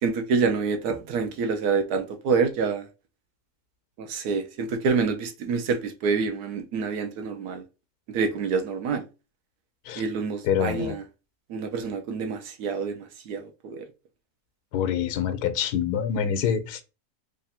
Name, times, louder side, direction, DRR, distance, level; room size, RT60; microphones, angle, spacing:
voice 1, 0.0-2.9 4.0-7.6 8.1-9.0 10.0-11.0 11.5-13.8, right 5 dB, 85° right, 1.2 m, -27 dB
voice 2, 10.4-10.9 14.7-16.8, left 8 dB, 85° left, 1.2 m, -26 dB
3.3 x 2.6 x 4.1 m
omnidirectional pair, 1.6 m